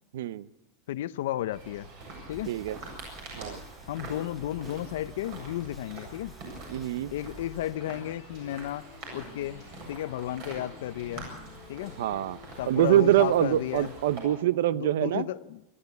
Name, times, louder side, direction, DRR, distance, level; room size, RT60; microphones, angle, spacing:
voice 1, 0.1-0.5 2.5-2.8 3.3-3.6 6.7-7.1 12.0-12.4 12.7-15.3, right 13 dB, 75° right, 18 dB, 0.7 m, -25 dB
voice 2, 0.9-1.9 2.3-2.5 3.9-6.3 7.1-8.9 9.1-11.3 11.7-12.0 12.6-13.9 14.7-15.6, left 13 dB, 70° left, 15 dB, 0.6 m, -33 dB
sound 1, 1.5-14.2, right 2 dB, 40° right, 7.7 m, -45 dB
sound 2, 2.3-7.8, equal, 5° left, 0.9 m, -51 dB
sound 3, 7.8-13.4, left 11 dB, 40° left, 1.2 m, -52 dB
26.5 x 12.5 x 8.2 m, 0.94 s
supercardioid pair, 180°, 0 cm